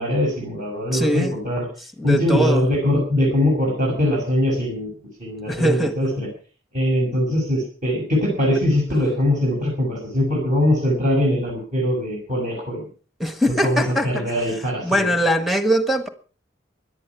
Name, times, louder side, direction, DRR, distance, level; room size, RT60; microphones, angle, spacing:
voice 1, 0.0-1.6 2.0-4.9 5.2-6.3 6.7-12.8 13.6-15.1, left 1 dB, 40° right, 6.9 m, -21 dB
voice 2, 0.9-1.4 2.0-2.7 5.5-6.0 13.2-14.3 14.8-16.1, equal, ahead, 1.4 m, -21 dB
17.5 x 11.0 x 6.0 m
head